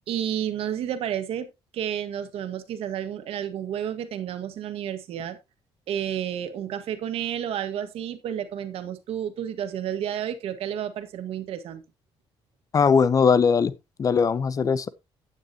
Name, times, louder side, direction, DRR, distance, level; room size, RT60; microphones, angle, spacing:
voice 1, 0.1-1.5 1.7-5.4 5.9-11.8, right 10 dB, 75° right, 1.7 m, -31 dB
voice 2, 12.7-13.7 14.0-14.9, left 6 dB, 35° left, 0.7 m, -20 dB
11.5 x 9.2 x 2.9 m
cardioid pair, 130°, 10 cm